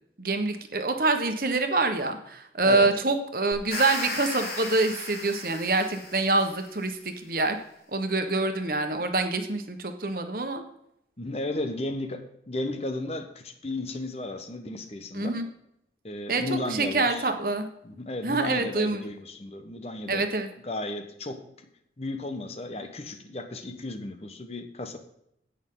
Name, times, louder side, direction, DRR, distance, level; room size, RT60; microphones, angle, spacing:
voice 1, 0.2-7.6 7.9-10.6 15.1-15.5 16.3-17.7 18.2-19.0 20.1-20.5, right 3 dB, 55° right, 6 dB, 1.3 m, -26 dB
voice 2, 2.6-2.9 11.2-15.4 16.0-17.2 17.8-20.3 20.6-21.7 22.0-25.0, left 2 dB, 35° left, 7 dB, 1.0 m, -34 dB
sound 1, 3.5-6.7, left 2 dB, 60° left, 4.0 m, -35 dB
16.5 x 6.4 x 3.9 m, 0.78 s
head